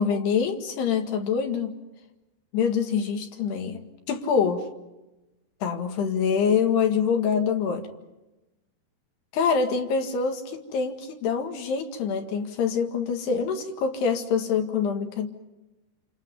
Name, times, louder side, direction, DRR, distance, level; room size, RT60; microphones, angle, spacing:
voice 1, 0.0-1.8 2.5-4.7 5.6-7.9 9.3-15.3, left 6 dB, 75° left, 5 dB, 4.0 m, -25 dB
29.0 x 27.5 x 5.2 m, 1.0 s
omnidirectional pair, 4.9 m